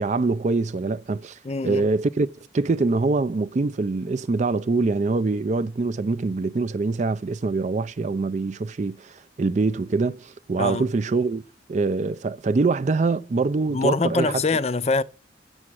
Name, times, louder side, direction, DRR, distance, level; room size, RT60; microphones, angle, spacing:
voice 1, 0.0-11.4 11.7-14.4, right 3 dB, 40° right, 0.4 m, -24 dB
voice 2, 1.4-1.9 10.6-10.9 13.7-15.0, left 3 dB, 35° left, 0.5 m, -24 dB
7.5 x 7.1 x 6.3 m
head